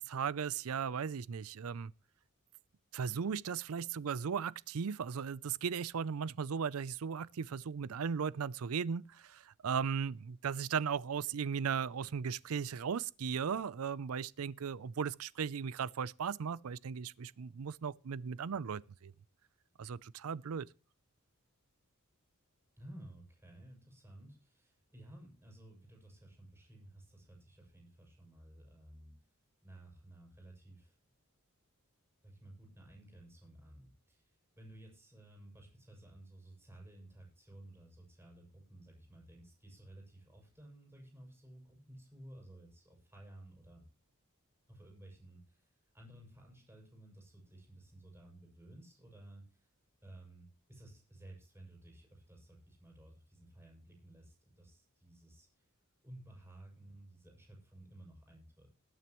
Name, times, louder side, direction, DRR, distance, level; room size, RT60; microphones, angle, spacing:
voice 1, 0.0-1.9 2.9-19.1 19.8-20.7, right 6 dB, 70° right, 0.5 m, -37 dB
voice 2, 22.8-29.1 29.6-31.0 32.2-43.9 44.7-49.7 50.0-55.6 56.0-58.7, right 1 dB, 10° right, 6.3 m, -55 dB
20.5 x 9.2 x 3.0 m
head